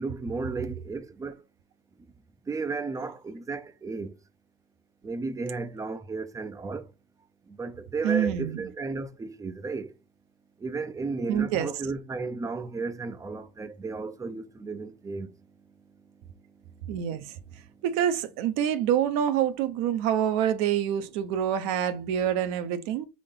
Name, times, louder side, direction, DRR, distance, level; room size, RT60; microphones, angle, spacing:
voice 1, 0.0-1.4 2.5-4.1 5.0-6.9 7.6-9.9 10.6-15.3, right 3 dB, 10° right, 0.4 m, -34 dB
voice 2, 8.0-8.6 11.3-11.7 16.9-17.2 17.8-23.1, right 9 dB, 65° right, 0.8 m, -26 dB
3.8 x 3.8 x 3.7 m
supercardioid pair, 115°, 36 cm